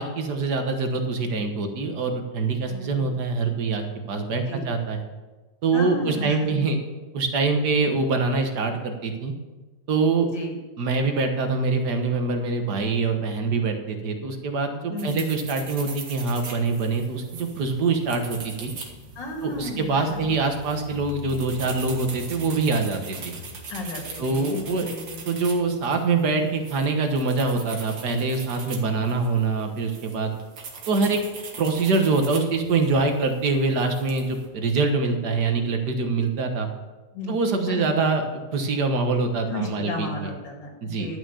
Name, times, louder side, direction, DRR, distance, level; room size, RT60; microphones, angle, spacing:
voice 1, 0.0-5.0 5.6-6.8 7.1-9.3 9.9-10.3 10.8-18.7 19.4-23.4 24.2-24.9 25.3-30.3 30.9-31.2 31.6-36.7 37.3-40.3 40.8-41.1, right 4 dB, 65° right, 5 dB, 1.9 m, -24 dB
voice 2, 2.7-3.1 4.2-4.7 5.7-6.6 10.3-10.6 14.9-15.2 19.2-20.2 23.7-25.2 37.1-37.3 37.7-37.9 39.5-41.2, left 2 dB, 85° left, 0 dB, 2.8 m, -34 dB
sound 1, 15.0-34.5, right 2 dB, 85° right, 2.2 m, -40 dB
11.5 x 6.3 x 7.0 m, 1.2 s
omnidirectional pair, 1.9 m